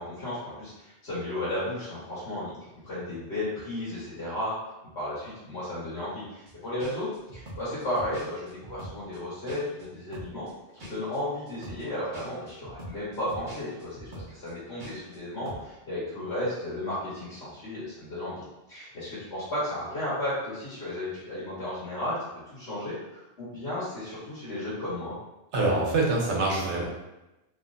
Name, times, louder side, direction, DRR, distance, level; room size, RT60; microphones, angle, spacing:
voice 1, 0.0-2.5 2.8-4.5 4.9-10.5 10.7-22.2 22.5-25.1, left 1 dB, 75° left, -11 dB, 1.5 m, -34 dB
sound 1, 6.5-6.6 6.8-9.9 10.1-15.2 15.5-15.7, right 1 dB, 50° right, 1.0 m, -43 dB
voice 2, 25.5-26.8, right 2 dB, 90° right, -2 dB, 1.1 m, -25 dB
3.1 x 3.0 x 2.5 m, 0.97 s
omnidirectional pair, 1.1 m